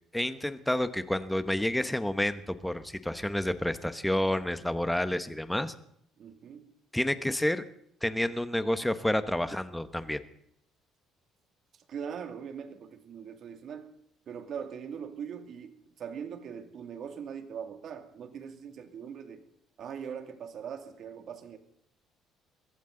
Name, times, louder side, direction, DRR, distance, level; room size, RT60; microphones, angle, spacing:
voice 1, 0.1-5.7 6.9-7.6 8.0-10.2, left 1 dB, 5° left, 12 dB, 1.1 m, -29 dB
voice 2, 6.2-6.7 11.9-13.9 14.3-19.4 19.8-21.6, right 7 dB, 50° right, 7 dB, 2.4 m, -41 dB
22.5 x 15.5 x 3.9 m, 0.69 s
cardioid pair, 130°, 0 cm